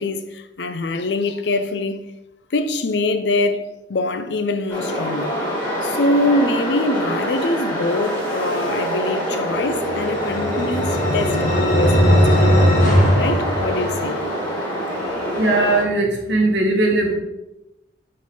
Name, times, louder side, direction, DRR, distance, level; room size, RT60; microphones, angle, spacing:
voice 1, 0.0-2.0 2.5-5.4 5.8-12.7 13.2-14.2, left 2 dB, 75° left, 0.6 m, -24 dB
sound 1, 4.7-15.8, equal, 15° left, 2.2 m, -25 dB
sound 2, 9.7-14.3, equal, 45° left, 1.4 m, -18 dB
voice 2, 15.4-17.1, right 2 dB, 85° right, 1.4 m, -19 dB
5.0 x 4.1 x 5.4 m
head